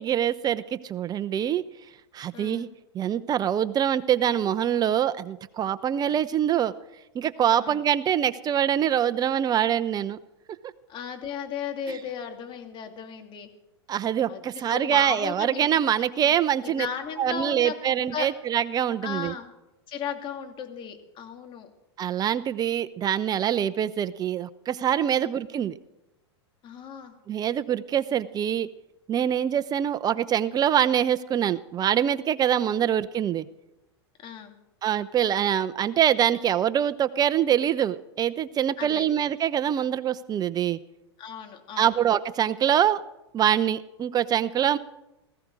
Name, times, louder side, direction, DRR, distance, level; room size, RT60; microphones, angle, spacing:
voice 1, 0.0-1.6 2.1-2.7 2.9-6.7 7.1-10.2 11.9-12.0 13.9-16.9 17.2-19.3 22.0-25.7 27.3-28.7 29.1-33.5 34.8-40.8 41.8-43.0 43.3-44.8, right 10 dB, 30° right, 13 dB, 0.8 m, -24 dB
voice 2, 2.3-2.7 6.1-6.2 7.6-7.8 10.9-13.5 14.3-16.3 16.6-17.8 18.1-18.3 19.0-19.5 19.9-21.7 25.2-25.3 26.6-27.1 34.2-34.6 38.8-39.1 41.2-41.9, left 7 dB, 35° left, 4 dB, 2.8 m, -36 dB
18.5 x 15.0 x 4.8 m, 0.93 s
hypercardioid pair, 105°, 14 cm